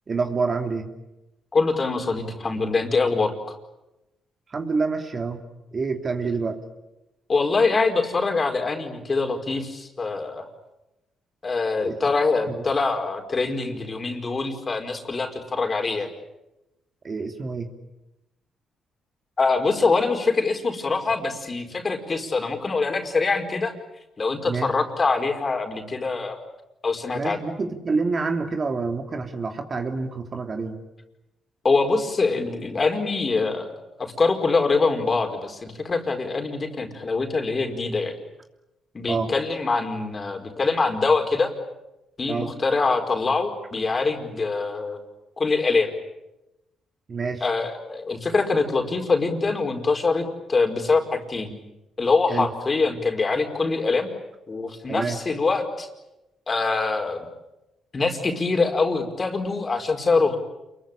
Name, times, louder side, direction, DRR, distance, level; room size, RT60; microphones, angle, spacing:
voice 1, 0.1-0.9 4.5-5.4 5.7-6.6 11.8-11.9 12.5-12.6 17.0-17.7 24.4-24.7 27.1-30.8 39.1-39.3 42.3-42.5 47.1-47.4 52.3-52.5 54.9-55.2, right 4 dB, 40° right, 5 dB, 3.0 m, -27 dB
voice 2, 1.5-3.3 7.3-10.5 11.4-16.1 19.4-23.7 24.2-26.4 26.8-27.4 31.6-38.1 38.9-41.5 42.2-45.0 45.4-45.9 47.4-51.5 52.0-54.1 54.5-55.9 56.5-57.3 57.9-60.4, left 4 dB, 30° left, 4 dB, 4.8 m, -24 dB
28.5 x 22.5 x 9.1 m, 0.96 s
cardioid pair, 90°, 0 cm